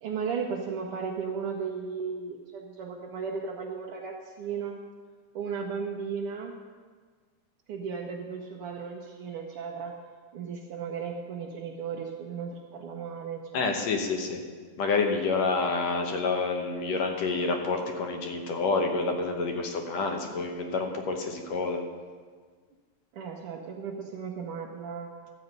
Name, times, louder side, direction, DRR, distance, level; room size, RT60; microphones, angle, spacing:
voice 1, 0.0-4.8 5.3-6.5 7.7-9.9 10.3-13.8 23.1-25.3, right 6 dB, 80° right, 0 dB, 1.3 m, -35 dB
voice 2, 13.5-14.4 14.8-21.8, left 4 dB, 70° left, 3 dB, 2.0 m, -28 dB
12.0 x 8.0 x 5.3 m, 1.5 s
omnidirectional pair, 3.5 m